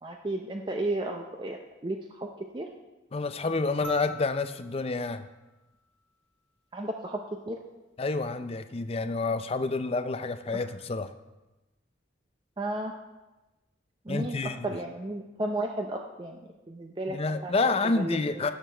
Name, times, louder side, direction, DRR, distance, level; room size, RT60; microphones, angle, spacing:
voice 1, 0.0-2.7 6.7-7.2 7.5-7.6 10.5-10.6 12.6-12.9 14.0-17.2 17.4-18.5, right 1 dB, 25° right, 2 dB, 0.5 m, -34 dB
voice 2, 3.1-5.3 8.0-11.1 14.1-14.7 17.1-18.5, left 3 dB, 30° left, 10 dB, 0.4 m, -29 dB
sound 1, 3.8-6.4 8.0-8.1, right 2 dB, 70° left, 1.8 m, -46 dB
17.0 x 6.6 x 3.3 m, 1.1 s
head